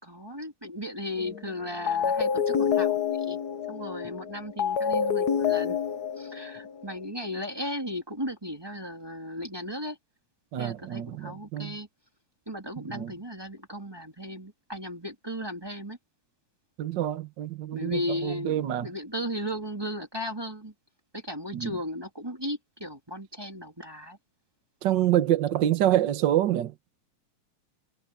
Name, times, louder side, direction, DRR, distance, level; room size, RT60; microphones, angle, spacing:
voice 1, 0.0-3.4 3.7-5.8 6.2-10.0 10.6-11.9 12.5-16.0 17.7-20.7 21.1-24.2, left 1 dB, 10° right, 2.2 m, -36 dB
sound 1, 1.2-1.5 1.9-7.0, left 7 dB, 80° left, 0.8 m, -27 dB
voice 2, 10.5-11.8 12.9-13.1 16.8-18.9 21.5-21.7 24.8-26.7, right 12 dB, 55° right, 1.3 m, -26 dB
omnidirectional pair, 3.3 m